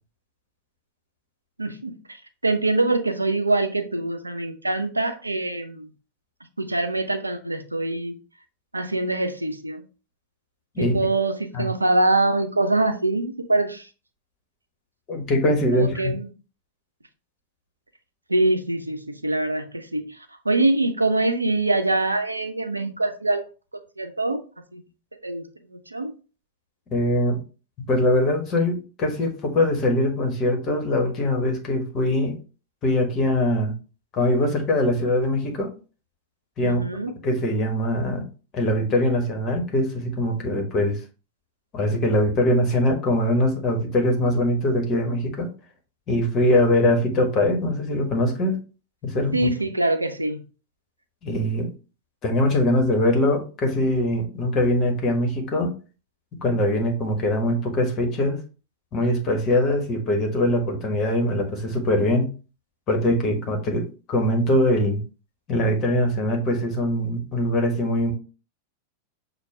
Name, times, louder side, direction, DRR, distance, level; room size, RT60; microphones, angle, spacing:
voice 1, 1.6-1.9 2.4-5.9 6.6-8.1 8.7-9.8 10.8-13.8 15.7-16.3 18.3-20.1 20.5-23.4 24.0-24.4 24.7-24.8 25.2-25.4 25.7-26.1 36.6-37.1 49.3-50.4, right 2 dB, 80° right, 8 dB, 0.5 m, -24 dB
voice 2, 15.1-16.2 26.9-27.4 27.8-32.4 32.8-33.7 34.1-35.7 36.6-36.8 37.2-38.3 38.5-41.0 41.7-45.5 46.1-48.6 49.0-49.5 51.2-51.7 52.2-55.7 56.4-58.4 58.9-62.3 62.9-65.0 65.5-68.1, left 1 dB, 30° left, 3 dB, 1.3 m, -22 dB
6.4 x 2.2 x 3.4 m, 0.35 s
figure-of-eight pair, 90°, 0 cm